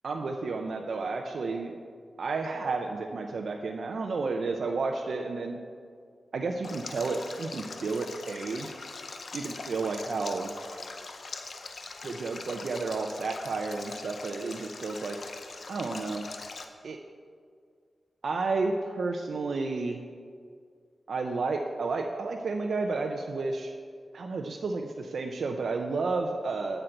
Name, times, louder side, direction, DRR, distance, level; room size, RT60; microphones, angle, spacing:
voice 1, 0.0-1.8 2.2-5.6 6.3-8.7 9.3-10.5 12.0-15.2 15.7-16.3 16.8-17.0 18.2-20.0 21.1-23.7 24.1-26.8, right 3 dB, 80° right, 2 dB, 0.5 m, -31 dB
Stream, 6.6-16.6, left 3 dB, 70° left, 0.7 m, -42 dB
8.0 x 7.7 x 4.5 m, 2.1 s
wide cardioid pair, 100°, 0 cm